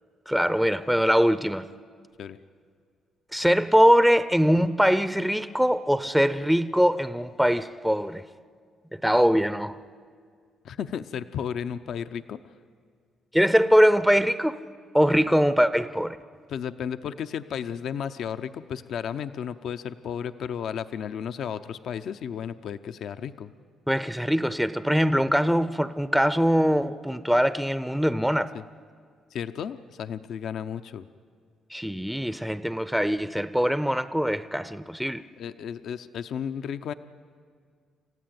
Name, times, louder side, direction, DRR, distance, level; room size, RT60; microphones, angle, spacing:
voice 1, 0.3-1.7 3.3-8.2 8.9-9.8 13.3-14.6 14.9-16.2 23.9-28.5 31.7-35.2, equal, ahead, 0.6 m, -22 dB
voice 2, 10.6-12.4 16.5-23.5 28.5-28.6 29.3-31.1 35.4-36.9, left 8 dB, 70° left, 0.6 m, -33 dB
28.0 x 15.0 x 9.5 m
cardioid pair, 90°, 0 cm